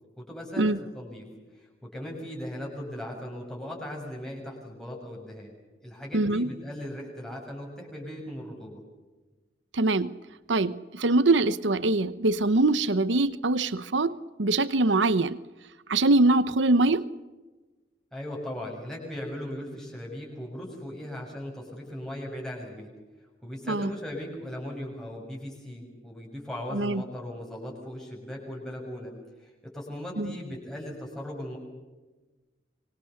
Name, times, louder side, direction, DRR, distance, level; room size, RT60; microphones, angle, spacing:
voice 1, 0.2-1.3 1.5-8.8 18.1-22.9 23.4-29.1 29.4-31.6, left 1 dB, 5° left, -3 dB, 6.8 m, -38 dB
voice 2, 6.1-6.5 9.7-10.1 10.5-15.4 15.9-17.1 23.7-23.9 26.7-27.0 30.2-30.3, right 2 dB, 85° right, 16 dB, 0.9 m, -23 dB
25.0 x 25.0 x 7.1 m, 1.2 s
head